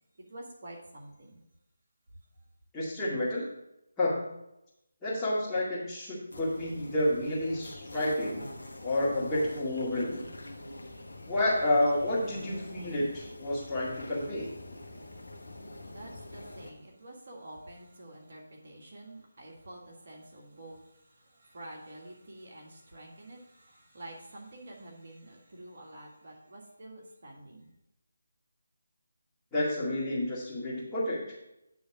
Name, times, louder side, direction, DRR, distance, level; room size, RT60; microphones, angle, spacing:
voice 1, 0.2-1.4 15.9-27.7, right 1 dB, 50° right, -1 dB, 1.6 m, -48 dB
voice 2, 2.7-3.5 4.0-4.3 5.0-8.4 8.8-10.3 11.3-14.5 29.5-31.2, left 1 dB, 10° left, -10 dB, 2.1 m, -30 dB
sound 1, 6.3-16.7, left 1 dB, 70° left, 1.2 m, -44 dB
9.5 x 3.5 x 5.9 m, 0.87 s
figure-of-eight pair, 155°, 0 cm